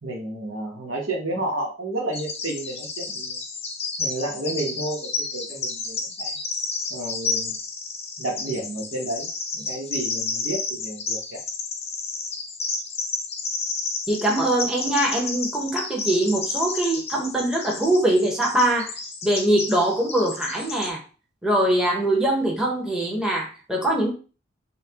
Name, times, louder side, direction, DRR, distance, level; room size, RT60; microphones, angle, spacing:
voice 1, 0.0-3.4 4.0-6.3 6.9-7.6 8.2-9.3 9.5-11.4, right 1 dB, 75° right, -2 dB, 1.2 m, -31 dB
Bird vocalization bird call bird song, 2.1-20.9, left 4 dB, 30° left, 0.6 m, -31 dB
voice 2, 14.1-18.9 19.2-21.0 21.4-24.1, right 1 dB, 5° right, -2 dB, 1.0 m, -22 dB
5.6 x 2.3 x 2.9 m, 0.35 s
head